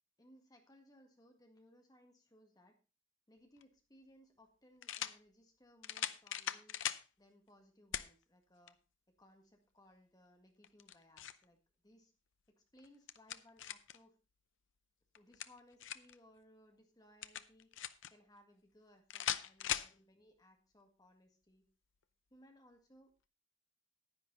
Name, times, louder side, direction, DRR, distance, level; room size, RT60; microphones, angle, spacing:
voice 1, 0.2-2.7 3.3-6.8 7.2-8.8 9.1-11.6 11.8-12.1 12.5-14.2 15.1-17.7 18.1-21.6 22.3-23.1, left 1 dB, 20° left, 4 dB, 1.6 m, -65 dB
sound 1, 3.6-3.7 4.8-5.2 5.8-7.0 7.9-8.1 8.7-8.8 10.6-11.4 12.8-14.0 15.1-16.2 17.2-18.1 19.1-19.9, left 10 dB, 75° left, 0.6 m, -40 dB
10.0 x 9.8 x 3.8 m, 0.32 s
head